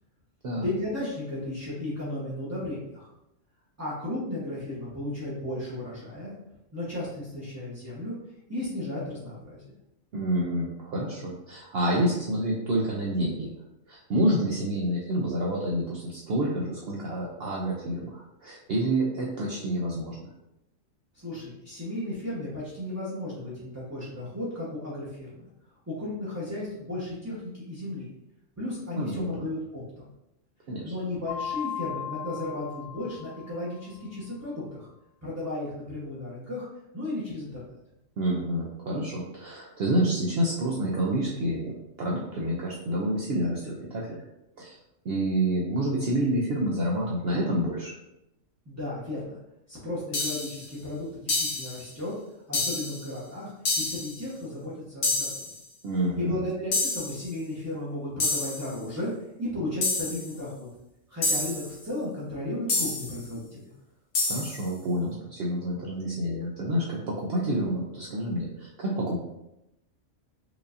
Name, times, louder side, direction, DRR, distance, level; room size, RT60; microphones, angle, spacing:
voice 1, 0.6-3.1 3.8-6.3 6.7-8.2 8.5-9.7 21.1-25.5 25.9-28.1 28.6-30.1 30.8-34.9 35.2-36.7 36.9-37.8 48.7-49.4 49.7-52.1 52.5-55.5 56.1-59.1 59.4-60.7 61.1-63.7, left 1 dB, 15° right, -10 dB, 0.8 m, -34 dB
voice 2, 10.1-13.5 13.9-20.3 28.9-29.5 30.7-30.8 38.2-44.2 44.6-44.8 45.0-47.9 55.8-56.4 64.2-69.2, right 1 dB, 60° right, -3 dB, 0.7 m, -28 dB
Mallet percussion, 31.3-33.9, left 9 dB, 50° left, 1.2 m, -37 dB
sound 1, 50.1-50.6 51.3-51.8 52.5-53.0 53.7-54.2 55.0-55.6 56.7-57.2 58.2-58.7 59.8-60.3 61.2-61.7 62.7-63.2 64.1-64.7, left 3 dB, 75° left, 1.2 m, -28 dB
4.7 x 2.6 x 2.5 m, 0.87 s
omnidirectional pair, 1.3 m